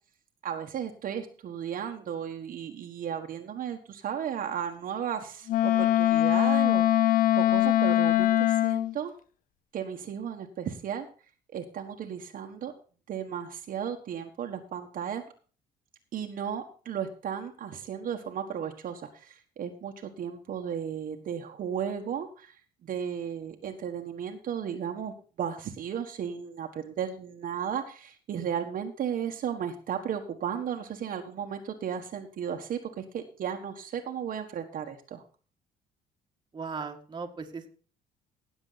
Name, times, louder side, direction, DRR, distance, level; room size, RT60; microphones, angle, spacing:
voice 1, 0.4-9.1 9.7-11.1 11.5-12.7 13.1-15.2 16.1-22.6 22.8-35.2, right 8 dB, 55° right, 4 dB, 1.6 m, -35 dB
Wind instrument woodwind instrument, 5.5-8.9, left 14 dB, 55° left, 0.6 m, -22 dB
voice 2, 36.5-37.7, right 5 dB, 25° right, 3 dB, 1.9 m, -37 dB
17.0 x 7.2 x 4.0 m, 0.38 s
cardioid pair, 110°, 17 cm